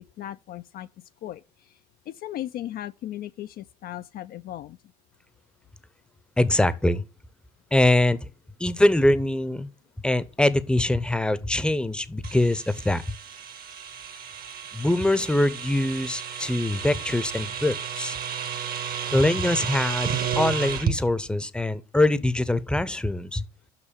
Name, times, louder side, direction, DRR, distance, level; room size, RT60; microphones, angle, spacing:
voice 1, 0.0-1.8 2.1-4.8, left 13 dB, 50° left, 0.4 m, -37 dB
voice 2, 6.4-7.0 7.7-8.3 8.6-9.7 10.0-13.1 14.7-18.2 19.1-20.1 20.4-23.4, left 1 dB, 5° left, 0.7 m, -23 dB
sound 1, 12.2-21.0, right 7 dB, 45° right, 1.2 m, -32 dB
6.2 x 5.7 x 7.0 m
hypercardioid pair, 60°, 20 cm